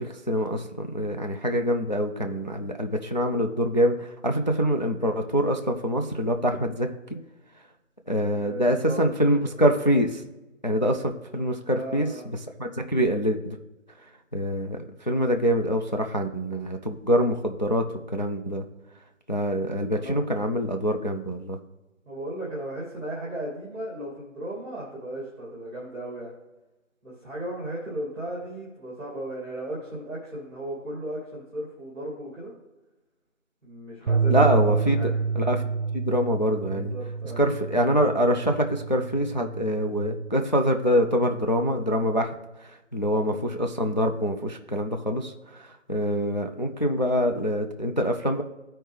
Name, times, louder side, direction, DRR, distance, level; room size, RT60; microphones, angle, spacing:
voice 1, 0.0-6.9 8.1-10.2 10.6-12.1 12.6-13.6 14.3-18.6 19.3-21.6 34.3-35.0 35.4-35.6 35.9-36.9 37.4-42.3 42.6-48.4, equal, 35° left, 4 dB, 0.4 m, -25 dB
voice 2, 8.3-9.7 11.7-12.2 20.0-20.2 22.0-26.3 27.0-32.5 33.6-35.1 36.7-37.4, right 1 dB, 5° left, -15 dB, 1.3 m, -36 dB
Bass guitar, 34.1-40.3, right 5 dB, 55° right, 0.6 m, -28 dB
13.0 x 4.4 x 3.2 m, 1.0 s
figure-of-eight pair, 155°, 39 cm